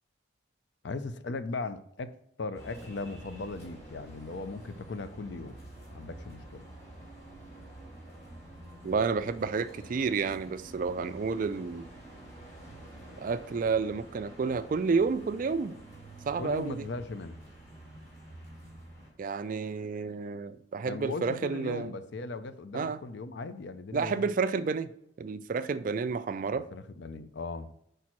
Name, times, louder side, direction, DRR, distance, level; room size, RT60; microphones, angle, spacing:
voice 1, 0.8-5.6 5.9-6.6 16.4-17.4 20.9-24.3 26.5-27.7, left 3 dB, 65° left, 0.5 m, -38 dB
sound 1, 2.5-19.1, right 1 dB, 35° left, 2.7 m, -48 dB
voice 2, 8.8-11.9 13.2-15.7 16.2-16.9 19.2-21.9 22.7-23.0 23.9-24.9 25.2-26.7, right 5 dB, 45° right, 0.3 m, -30 dB
5.1 x 4.4 x 6.0 m
head